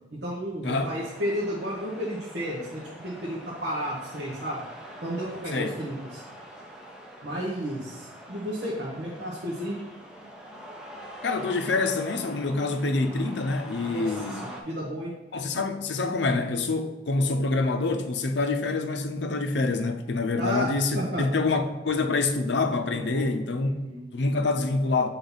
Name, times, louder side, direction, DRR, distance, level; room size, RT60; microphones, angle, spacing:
voice 1, 0.1-4.6 5.0-6.2 7.2-9.8 13.9-15.1 20.4-21.2 22.9-23.3 23.7-24.0, equal, 70° right, 1.2 m, -32 dB
sound 1, 0.6-14.6, equal, 5° right, 0.8 m, -44 dB
voice 2, 11.2-14.4 15.3-23.7 24.1-25.1, left 3 dB, 70° left, 0.6 m, -26 dB
7.0 x 3.9 x 4.0 m
head